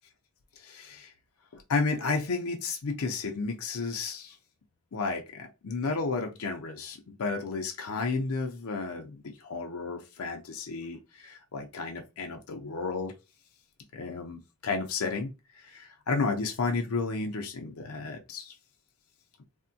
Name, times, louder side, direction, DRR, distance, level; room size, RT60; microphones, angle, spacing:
voice 1, 0.6-1.1 1.5-4.4 4.9-13.1 13.9-18.5, left 4 dB, 85° left, 0.5 m, -32 dB
3.4 x 2.1 x 2.6 m
head